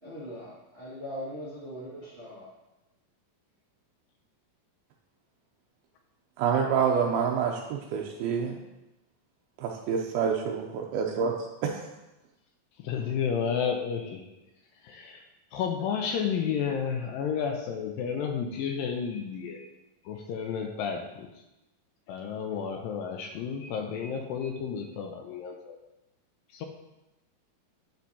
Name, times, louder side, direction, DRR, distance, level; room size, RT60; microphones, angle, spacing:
voice 1, 0.0-2.5, equal, 35° right, 1.0 m, -40 dB
voice 2, 6.4-8.6 9.6-11.3 11.6-11.7, right 7 dB, 90° right, 2.5 m, -27 dB
voice 3, 12.8-14.2 14.8-15.2 15.5-19.7 20.1-21.3 22.1-25.8 26.5-26.7, left 7 dB, 80° left, 2.2 m, -31 dB
8.7 x 6.0 x 2.8 m
omnidirectional pair, 4.2 m